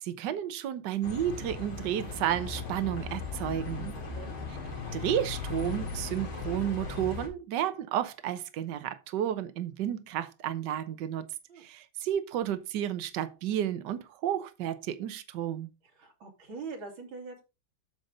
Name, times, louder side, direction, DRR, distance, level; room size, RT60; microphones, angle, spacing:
voice 1, 0.0-4.0 4.9-11.3 11.6-15.7, right 11 dB, 65° right, 1.5 m, -32 dB
Bus, 1.0-7.3, left 4 dB, 80° left, 3.1 m, -37 dB
voice 2, 16.0-17.4, right 4 dB, 80° right, 3.2 m, -42 dB
9.1 x 7.0 x 3.9 m
omnidirectional pair, 2.1 m